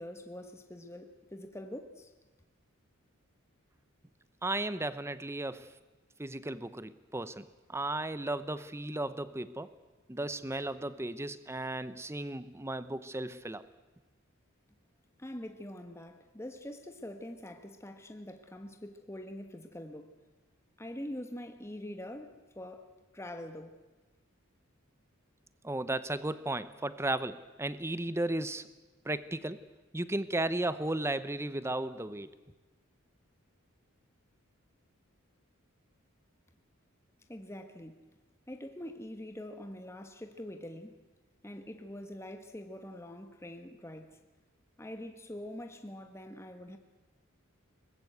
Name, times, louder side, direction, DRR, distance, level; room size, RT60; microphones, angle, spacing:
voice 1, 0.0-2.1 15.2-20.2 20.8-22.9 23.1-23.8 37.3-38.0 38.5-41.0 41.4-44.2 44.8-46.8, left 1 dB, 15° left, 1.5 m, -44 dB
voice 2, 4.4-5.7 6.2-9.7 10.1-13.6 25.6-28.7 29.0-29.6 29.9-32.3, right 2 dB, 15° right, 0.9 m, -35 dB
23.0 x 20.5 x 8.1 m
head